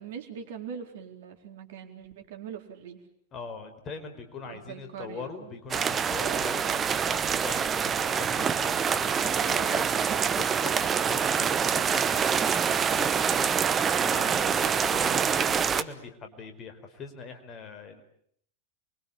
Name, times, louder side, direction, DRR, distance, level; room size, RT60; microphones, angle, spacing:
voice 1, 0.0-3.0 4.5-5.5 6.1-6.8 9.3-10.2, right 8 dB, 55° right, 5 dB, 4.1 m, -42 dB
voice 2, 3.3-9.8 10.4-12.2 12.6-18.0, left 5 dB, 30° left, 6 dB, 4.9 m, -41 dB
sound 1, 5.7-15.8, right 7 dB, 20° right, 1.1 m, -26 dB
28.5 x 23.5 x 8.7 m, 0.68 s
figure-of-eight pair, 90°, 0 cm